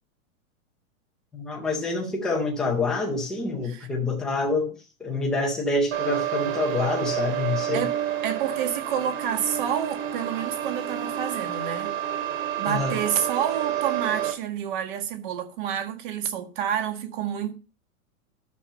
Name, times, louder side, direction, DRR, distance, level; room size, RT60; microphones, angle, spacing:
voice 1, 1.3-4.7 5.0-7.8 12.7-13.0, left 3 dB, ahead, 0.5 m, -27 dB
sound 1, 5.9-14.3, right 11 dB, 60° right, 3.4 m, -29 dB
voice 2, 8.2-11.9 12.6-17.6, right 9 dB, 35° right, 1.7 m, -29 dB
11.5 x 7.1 x 5.4 m
supercardioid pair, 180°, 42 cm